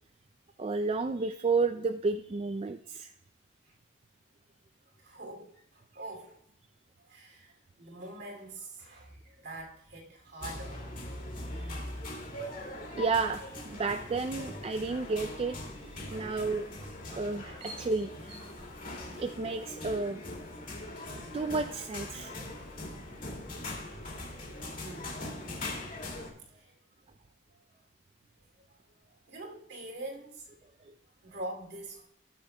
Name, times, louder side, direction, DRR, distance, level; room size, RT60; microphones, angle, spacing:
voice 1, 0.6-3.1 13.0-15.6 16.1-16.7 17.2-18.3 19.2-20.2 21.3-22.6 30.9-31.0, right 4 dB, 30° right, 8 dB, 0.3 m, -31 dB
voice 2, 5.0-6.4 7.0-10.9 11.5-12.0 16.0-16.3 16.8-17.8 18.3-18.8 21.1-21.4 24.8-25.2 26.5-26.7 28.7-28.8 29.3-30.5 31.2-32.1, right 2 dB, 55° right, 2 dB, 2.6 m, -45 dB
sound 1, 10.4-26.3, left 1 dB, 40° left, 2.3 m, -41 dB
19.5 x 6.6 x 2.2 m, 0.74 s
head